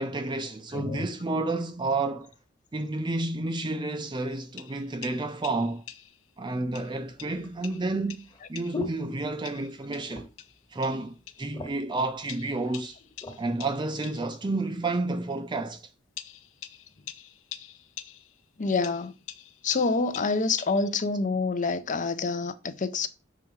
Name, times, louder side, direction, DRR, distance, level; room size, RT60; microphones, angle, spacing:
voice 1, 0.0-2.3 2.7-5.8 6.4-8.2 8.5-10.3 10.7-13.0 13.4-15.9, right 2 dB, 25° right, 0.5 m, -30 dB
voice 2, 0.7-1.1 18.6-19.1 19.6-23.1, left 4 dB, 40° left, 0.6 m, -27 dB
sound 1, 4.3-6.3 6.8-9.0 9.5-11.5 12.3-14.4 15.3-15.4 16.2-18.5 18.8-21.1, left 11 dB, 80° left, 0.6 m, -46 dB
sound 2, 5.7-5.8 6.6-9.8 10.0-10.5 10.9-11.0 11.3-12.0 12.7-13.4 14.0-14.2, left 3 dB, 20° left, 1.3 m, -40 dB
6.9 x 3.5 x 4.8 m
head